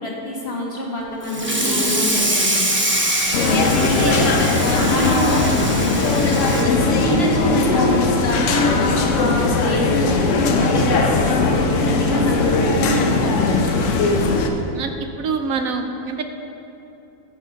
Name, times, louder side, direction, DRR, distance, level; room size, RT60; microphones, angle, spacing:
voice 1, 0.0-2.7 3.7-14.2, equal, 40° left, -2 dB, 1.6 m, -26 dB
Water tap faucet / Sink (filling or washing), 1.2-7.9 8.3-8.5 8.9-9.0 9.4-9.5 10.6-10.7 11.2-11.4, right 1 dB, 15° right, 0.4 m, -24 dB
sound 1, 3.3-14.5, left 3 dB, 55° left, 0.9 m, -19 dB
voice 2, 3.4-4.2 14.7-14.9 15.2-16.2, right 5 dB, 70° right, 6 dB, 0.9 m, -27 dB
10.0 x 6.3 x 5.1 m, 2.9 s
omnidirectional pair, 1.9 m